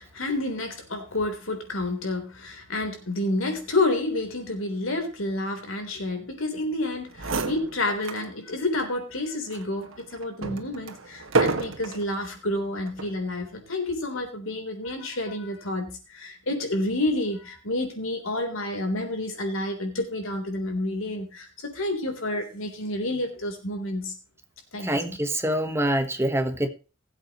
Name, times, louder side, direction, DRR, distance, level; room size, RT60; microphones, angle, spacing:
voice 1, 0.0-24.1 24.7-25.2, left 2 dB, 80° left, 3.8 m, -29 dB
sound 1, 6.9-7.0 7.1-8.3 8.7-8.9 9.5-12.1 12.9-13.2, right 3 dB, 75° right, 1.8 m, -29 dB
voice 2, 24.8-26.7, right 1 dB, 15° right, 1.3 m, -25 dB
20.5 x 8.1 x 3.1 m
head